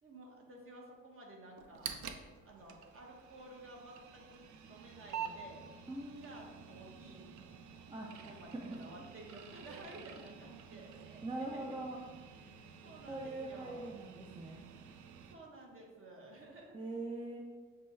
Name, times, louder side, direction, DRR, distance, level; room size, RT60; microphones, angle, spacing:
voice 1, 0.0-1.9 2.4-5.6 6.1-7.3 8.1-11.8 12.6-13.9 15.3-16.8, right 1 dB, 45° right, 0 dB, 1.1 m, -53 dB
sound 1, 1.6-15.4, right 7 dB, 70° right, 0.5 m, -49 dB
voice 2, 5.9-6.4 7.9-8.8 11.2-12.0 13.1-14.6 16.7-17.4, right 2 dB, 15° right, 0 dB, 0.5 m, -42 dB
6.6 x 2.2 x 3.2 m, 1.5 s
cardioid pair, 90°, 30 cm